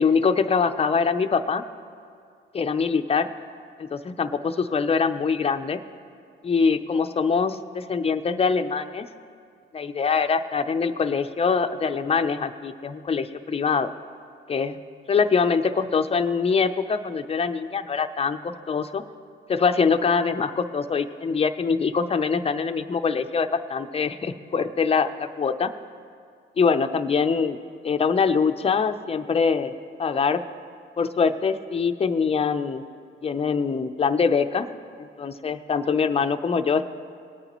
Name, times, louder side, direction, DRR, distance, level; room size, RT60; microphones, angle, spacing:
voice 1, 0.0-1.6 2.5-3.3 3.8-5.8 6.4-9.1 9.7-13.9 14.5-14.8 15.1-19.0 19.5-25.7 26.6-27.6 27.8-29.7 30.0-30.4 31.0-32.8 33.2-34.7 35.0-36.9, left 5 dB, 30° left, 9 dB, 0.6 m, -23 dB
20.5 x 9.0 x 3.0 m, 2.3 s
cardioid pair, 90°, 20 cm